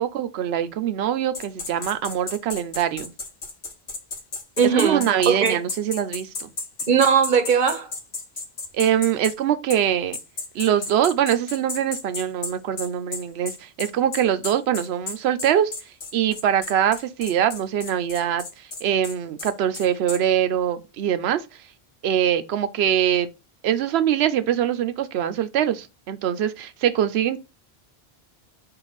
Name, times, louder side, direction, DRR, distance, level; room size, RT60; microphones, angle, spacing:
voice 1, 0.0-3.1 4.7-6.5 8.7-10.2 10.5-15.7 16.1-21.4 22.0-23.3 23.6-27.4, right 10 dB, 80° right, 0.8 m, -23 dB
sound 1, 1.3-9.4 9.7-9.8 10.1-20.2, left 3 dB, 60° left, 1.1 m, -33 dB
voice 2, 4.6-5.6 6.9-7.9, right 6 dB, 55° right, 0.8 m, -19 dB
4.7 x 2.5 x 3.9 m
omnidirectional pair, 1.1 m